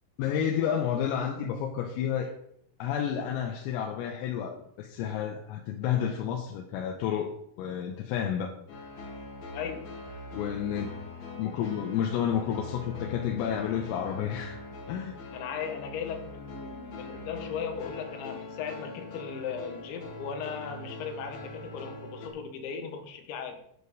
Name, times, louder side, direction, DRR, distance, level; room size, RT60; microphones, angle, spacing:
voice 1, 0.2-2.3 2.8-8.5 10.3-10.9 11.4-14.6 14.9-15.1, left 8 dB, 90° left, 1 dB, 3.8 m, -30 dB
sound 1, 8.7-22.3, left 3 dB, 55° left, 3.5 m, -42 dB
voice 2, 9.5-10.0 15.3-23.6, left 7 dB, 70° left, 5 dB, 3.4 m, -37 dB
11.0 x 5.6 x 8.0 m, 0.71 s
omnidirectional pair, 5.9 m